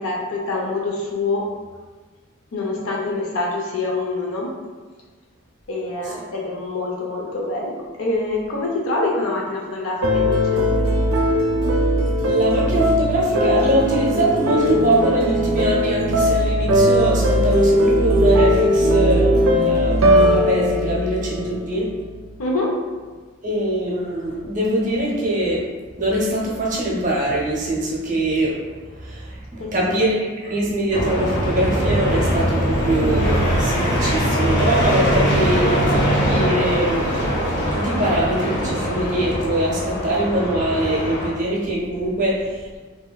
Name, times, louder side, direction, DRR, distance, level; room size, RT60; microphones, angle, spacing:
voice 1, 0.0-1.4 2.5-4.5 5.7-10.6 22.4-22.7 29.6-30.0, left 2 dB, 85° left, -2 dB, 0.5 m, -25 dB
sound 1, 10.0-22.1, equal, 90° right, 0.4 m, -18 dB
voice 2, 12.2-21.9 23.4-25.6 26.0-28.6 28.9-30.1 30.4-37.0 37.7-42.8, right 1 dB, 35° right, -4 dB, 0.6 m, -22 dB
sound 2, 30.9-41.3, equal, 50° left, 0.7 m, -21 dB
3.1 x 2.8 x 2.2 m, 1.4 s
head